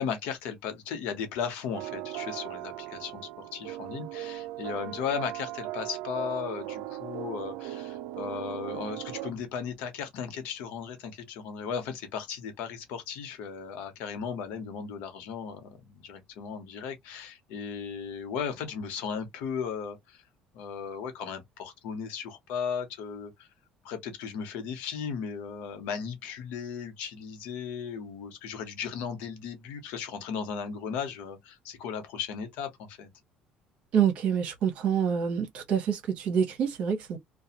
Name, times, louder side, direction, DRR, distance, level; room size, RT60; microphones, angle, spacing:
voice 1, 0.0-20.2 20.5-23.5 23.8-33.1, left 7 dB, 85° left, 0.9 m, -36 dB
sound 1, 1.7-9.3, right 15 dB, 90° right, 0.3 m, -38 dB
voice 2, 33.9-37.2, right 7 dB, 60° right, 0.9 m, -27 dB
2.4 x 2.3 x 2.8 m
cardioid pair, 125°, 2 cm